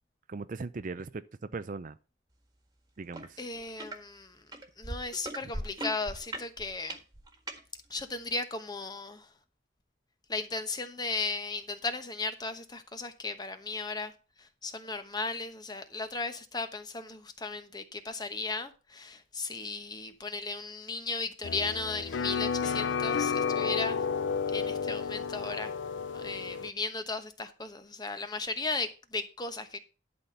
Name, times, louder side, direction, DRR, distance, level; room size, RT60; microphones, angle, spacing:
voice 1, 0.3-2.0 3.0-3.4, right 3 dB, 45° right, 0.5 m, -39 dB
sound 1, 3.1-3.3 3.6-4.0 4.5-7.6 8.3-8.4, right 1 dB, 20° right, 1.6 m, -38 dB
voice 2, 3.4-4.4 4.8-7.0 7.9-9.3 10.3-14.1 14.4-24.1 24.5-25.8 26.1-29.8, left 3 dB, 20° left, 1.0 m, -36 dB
sound 2, 21.4-26.7, left 6 dB, 80° left, 0.5 m, -31 dB
11.5 x 4.3 x 6.7 m
head